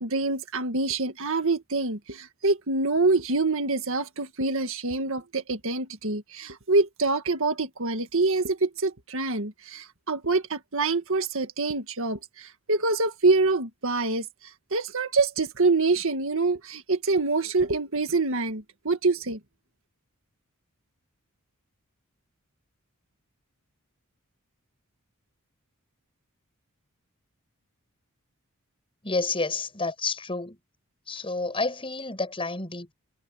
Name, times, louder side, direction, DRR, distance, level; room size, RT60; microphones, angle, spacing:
voice 1, 0.0-14.3 14.7-19.4, right 3 dB, 65° right, 1.9 m, -26 dB
voice 2, 29.0-30.6 31.1-32.9, left 3 dB, 25° left, 7.2 m, -30 dB
head